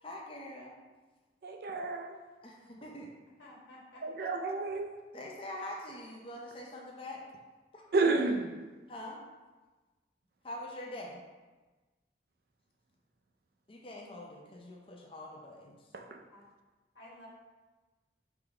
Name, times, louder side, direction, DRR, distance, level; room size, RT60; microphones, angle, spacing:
voice 1, 0.0-0.7 2.4-3.1 5.1-7.2 7.7-7.9 8.9-9.2 10.4-11.2 13.7-15.8, left 1 dB, 30° left, -1 dB, 0.6 m, -44 dB
voice 2, 1.4-2.1 4.0-4.9 7.9-8.6 15.9-16.2, right 3 dB, 55° right, 4 dB, 0.4 m, -31 dB
voice 3, 3.4-4.0 4.4-4.5 16.3-16.4 16.9-17.3, left 1 dB, 90° left, -5 dB, 1.4 m, -52 dB
3.6 x 3.0 x 4.8 m, 1.2 s
head